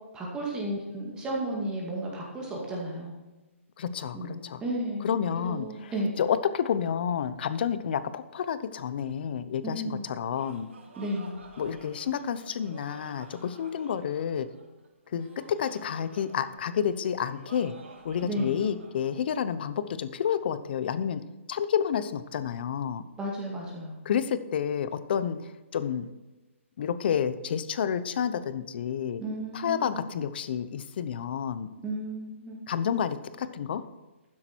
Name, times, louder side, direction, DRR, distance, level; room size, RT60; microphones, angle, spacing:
voice 1, 0.1-3.1 4.1-5.1 5.4-6.1 9.6-10.1 11.0-11.4 18.2-18.6 23.2-24.0 29.2-30.0 31.8-32.6, right 1 dB, 10° right, -2 dB, 2.2 m, -33 dB
voice 2, 3.8-4.6 5.0-10.7 11.6-14.5 15.1-17.8 18.0-21.2 21.5-23.0 24.0-26.1 26.8-29.2 29.5-31.7 32.7-33.8, left 8 dB, 45° left, 14 dB, 0.8 m, -30 dB
Laughter, 10.0-19.1, right 3 dB, 65° right, 3.3 m, -51 dB
12.0 x 9.8 x 4.6 m, 1.1 s
hypercardioid pair, 160°, 7 cm